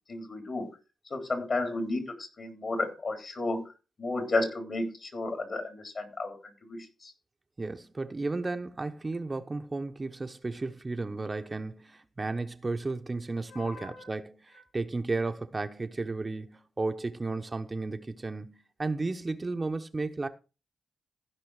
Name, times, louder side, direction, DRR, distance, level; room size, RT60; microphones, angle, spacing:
voice 1, 0.1-0.7 1.1-3.7 4.0-6.4 6.6-7.1 13.5-14.1, left 2 dB, 50° left, 3.7 m, -33 dB
voice 2, 7.6-20.3, right 3 dB, 30° right, 1.0 m, -33 dB
15.5 x 5.4 x 4.9 m
cardioid pair, 60°, 0 cm